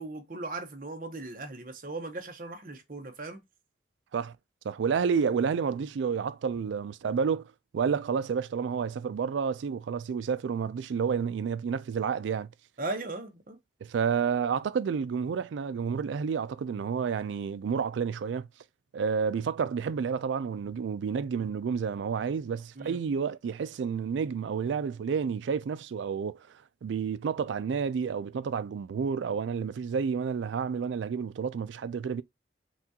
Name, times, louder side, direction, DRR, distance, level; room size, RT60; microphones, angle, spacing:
voice 1, 0.0-3.4 12.8-13.6 22.8-23.0, right 2 dB, 45° right, 0.8 m, -38 dB
voice 2, 4.6-7.4 7.7-12.5 13.8-18.5 18.9-26.4 26.8-32.2, right 6 dB, 85° right, 0.3 m, -30 dB
5.8 x 2.3 x 2.8 m
head